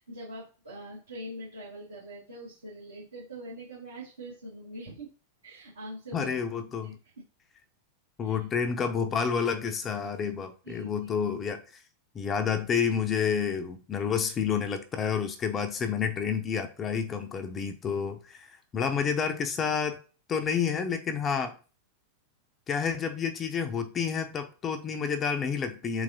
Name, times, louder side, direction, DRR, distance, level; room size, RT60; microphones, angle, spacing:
voice 1, 0.0-5.1 5.4-6.3 6.8-7.1 8.2-8.4 10.6-11.2, right 1 dB, 80° right, 1.4 m, -43 dB
voice 2, 6.1-6.9 8.2-11.6 12.1-20.0 20.3-21.5 22.7-26.0, left 6 dB, 25° left, 0.4 m, -29 dB
3.9 x 2.9 x 2.6 m
figure-of-eight pair, 90°, 0 cm